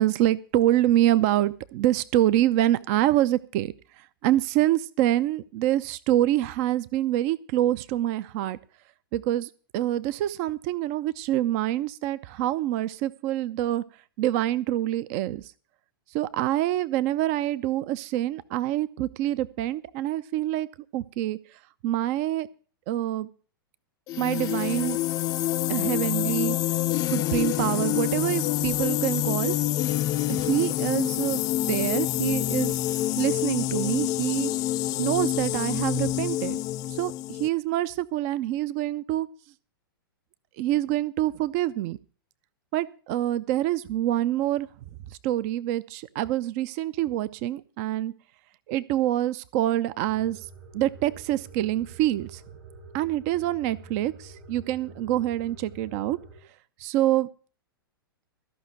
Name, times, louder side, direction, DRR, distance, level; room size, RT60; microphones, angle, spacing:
voice 1, 0.0-3.7 4.2-8.6 9.1-13.8 14.2-15.4 16.1-20.7 20.9-21.4 21.8-22.5 22.9-23.3 24.2-25.0 25.7-26.6 27.1-29.5 30.3-32.8 33.2-34.5 35.0-36.6 36.9-39.3 40.6-42.0 42.7-44.7 45.2-48.1 48.7-50.4 50.7-52.4 52.9-56.2 56.8-57.3, right 13 dB, 40° right, 16 dB, 0.6 m, -26 dB
sound 1, 24.1-37.5, left 14 dB, 30° left, 0.5 m, -27 dB
sound 2, 50.0-56.4, right 4 dB, 70° right, 7.5 m, -47 dB
14.0 x 5.7 x 8.9 m, 0.40 s
figure-of-eight pair, 105°, 12 cm